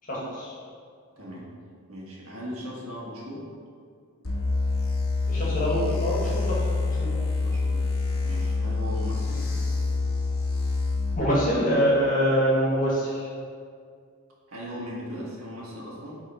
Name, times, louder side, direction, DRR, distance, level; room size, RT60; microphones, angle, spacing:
voice 1, 0.1-0.5 5.3-7.1 11.1-13.3, equal, 35° left, -6 dB, 1.7 m, -25 dB
voice 2, 1.2-1.5 1.9-3.4 7.4-7.8 8.2-9.5 14.5-16.2, equal, 70° right, -5 dB, 1.7 m, -38 dB
sound 1, 4.2-11.1, left 3 dB, 70° left, 1.3 m, -26 dB
8.2 x 3.8 x 4.3 m, 2.2 s
head